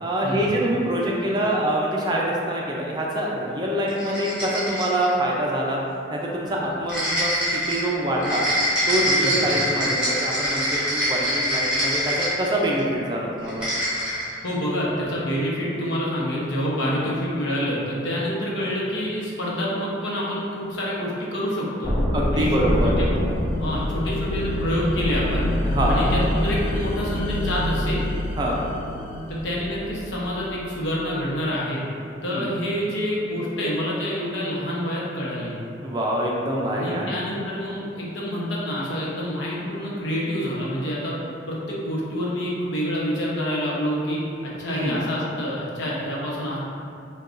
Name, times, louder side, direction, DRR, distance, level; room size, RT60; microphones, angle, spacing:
voice 1, 0.0-5.8 6.1-8.4 8.9-13.7 16.8-16.9 22.1-22.9 25.7-26.1 28.4-28.6 32.3-32.5 35.8-37.1 44.7-45.0, right 1 dB, 20° right, -3 dB, 0.4 m, -25 dB
sound 1, 3.9-5.1 6.9-12.8 13.4-14.3, equal, 5° right, 1.1 m, -24 dB
voice 2, 14.4-21.9 22.3-23.1 23.6-25.5 25.9-28.0 29.3-31.8 32.2-35.5 36.7-41.1 41.5-44.2 44.6-46.6, equal, 75° left, -5 dB, 0.9 m, -27 dB
sound 2, 21.8-30.7, left 1 dB, 50° left, 1.0 m, -25 dB
6.5 x 2.3 x 2.5 m, 2.6 s
head